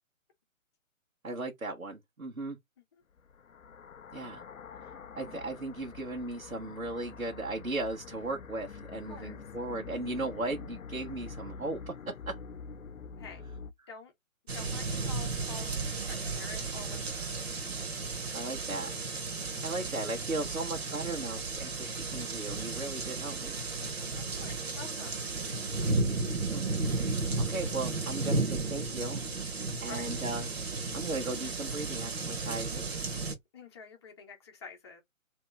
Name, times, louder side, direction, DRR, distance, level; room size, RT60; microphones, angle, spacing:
voice 1, 1.2-2.6 4.1-4.4 4.8-12.4 18.3-18.9 19.2-23.6 26.5-26.6 26.9-29.2 29.8-30.5 30.7-33.0, right 2 dB, 85° right, 1.2 m, -37 dB
sound 1, 3.2-13.7, left 5 dB, 75° left, 0.5 m, -46 dB
voice 2, 13.2-13.5 13.9-14.1 14.5-17.2 24.2-25.2 29.6-30.0 33.5-35.0, left 4 dB, 20° left, 0.9 m, -48 dB
sound 2, 14.5-33.3, right 3 dB, 45° right, 1.2 m, -34 dB
3.0 x 3.0 x 3.4 m
figure-of-eight pair, 140°, 41 cm